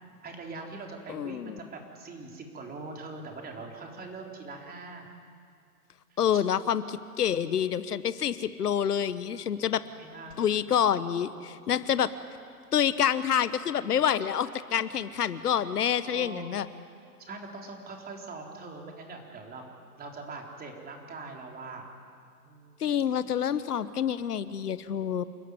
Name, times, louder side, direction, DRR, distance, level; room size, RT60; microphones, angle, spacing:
voice 1, 0.2-5.1 6.1-6.4 10.0-10.5 10.8-11.5 16.0-16.7 17.2-19.6 20.0-21.9 22.4-22.8, right 3 dB, 20° right, 1 dB, 4.0 m, -42 dB
voice 2, 1.1-1.6 6.2-9.8 10.4-12.1 12.7-16.7 22.8-25.2, left 9 dB, 80° left, 15 dB, 1.1 m, -27 dB
28.5 x 12.5 x 9.7 m, 2.3 s
hypercardioid pair, 115°, 46 cm